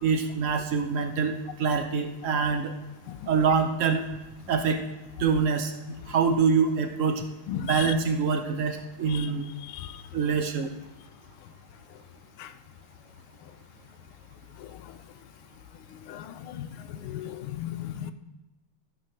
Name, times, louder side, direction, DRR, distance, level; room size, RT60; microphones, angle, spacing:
voice 1, 0.0-1.3 1.6-2.7 3.3-4.0 4.5-4.8 5.2-5.7 6.1-7.2 7.7-9.5 10.1-10.7, right 5 dB, 70° right, 6 dB, 0.7 m, -25 dB
voice 2, 16.1-16.7 17.0-18.1, left 11 dB, 80° left, 11 dB, 1.4 m, -35 dB
14.0 x 4.8 x 5.8 m, 1.0 s
omnidirectional pair, 2.4 m